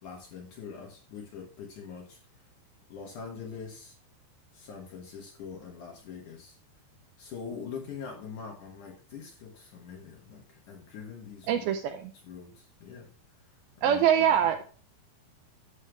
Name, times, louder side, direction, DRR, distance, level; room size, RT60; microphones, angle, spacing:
voice 1, 0.0-2.4 2.9-4.0 4.5-6.6 7.2-11.7 12.1-13.1 13.8-14.5, left 6 dB, 65° left, 1 dB, 2.2 m, -43 dB
voice 2, 11.5-12.0 13.8-14.6, right 9 dB, 80° right, 7 dB, 2.2 m, -24 dB
11.5 x 7.5 x 3.3 m, 0.39 s
omnidirectional pair, 5.0 m